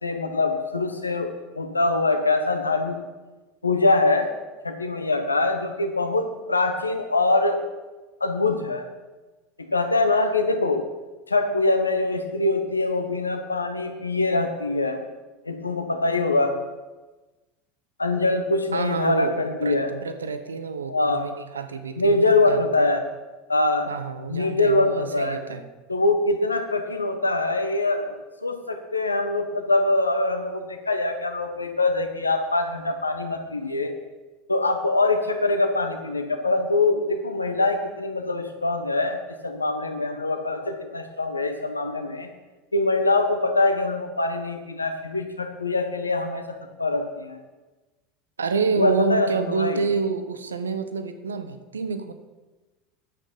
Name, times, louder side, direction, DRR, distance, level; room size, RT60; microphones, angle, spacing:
voice 1, 0.0-1.3 1.6-3.0 3.6-4.3 4.6-7.6 8.2-8.8 9.6-10.8 11.3-15.0 15.5-16.5 18.0-19.9 20.9-21.3 22.0-23.0 23.5-23.9 24.3-25.4 25.9-28.1 28.4-33.9 34.5-42.3 42.7-46.4 46.8-47.4 48.8-49.8, left 2 dB, 85° left, 6 dB, 1.2 m, -23 dB
voice 2, 18.7-22.9 23.9-25.6 48.4-52.1, right 5 dB, 80° right, 9 dB, 0.9 m, -28 dB
11.0 x 8.4 x 5.4 m, 1.2 s
figure-of-eight pair, 75°, 0 cm